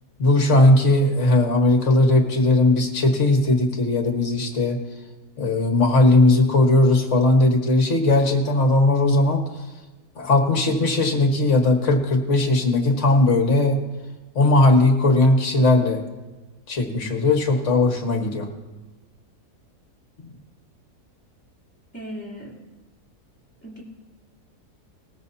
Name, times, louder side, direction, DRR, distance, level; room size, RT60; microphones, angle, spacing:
voice 1, 0.2-4.8 5.4-9.4 10.1-13.8 14.3-16.0 16.7-18.5, left 2 dB, 50° left, 3 dB, 1.8 m, -18 dB
voice 2, 21.9-22.5 23.6-23.8, equal, 5° left, -4 dB, 2.9 m, -36 dB
19.5 x 13.5 x 2.8 m, 1.2 s
omnidirectional pair, 1.7 m